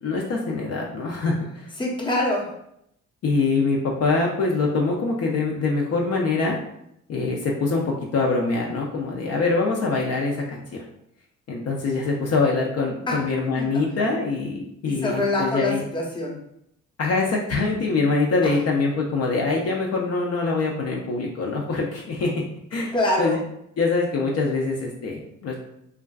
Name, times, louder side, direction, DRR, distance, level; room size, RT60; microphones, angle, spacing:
voice 1, 0.0-1.7 3.2-6.6 7.1-10.8 11.5-15.8 17.0-22.4 22.7-23.4 23.8-25.6, left 3 dB, 55° left, -2 dB, 0.5 m, -24 dB
voice 2, 1.8-2.5 13.1-13.2 13.6-13.7 14.8-16.3 18.4-18.5 22.9-23.4, left 1 dB, 15° left, -3 dB, 0.7 m, -25 dB
2.4 x 2.3 x 2.2 m, 0.76 s
cardioid pair, 90°, 30 cm